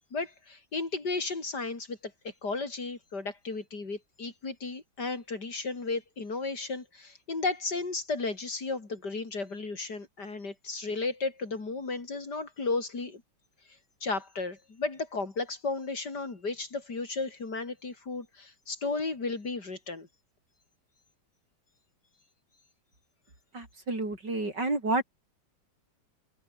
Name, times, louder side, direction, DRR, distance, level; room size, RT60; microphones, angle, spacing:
voice 1, 0.1-13.2 14.0-20.1, left 3 dB, 60° left, 4.4 m, -34 dB
voice 2, 23.5-25.0, right 2 dB, 65° right, 6.9 m, -30 dB
omnidirectional pair, 2.0 m